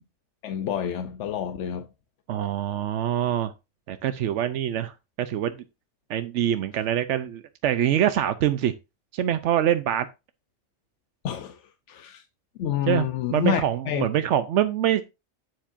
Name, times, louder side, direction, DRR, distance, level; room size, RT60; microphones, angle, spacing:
voice 1, 0.4-1.8 11.2-11.6 11.9-12.2 12.6-14.1, left 9 dB, 85° left, 1.0 m, -28 dB
voice 2, 2.3-3.5 3.9-5.5 6.1-8.7 9.1-10.1 12.9-15.0, right 10 dB, 85° right, 0.9 m, -25 dB
9.2 x 7.2 x 2.5 m
omnidirectional pair, 1.2 m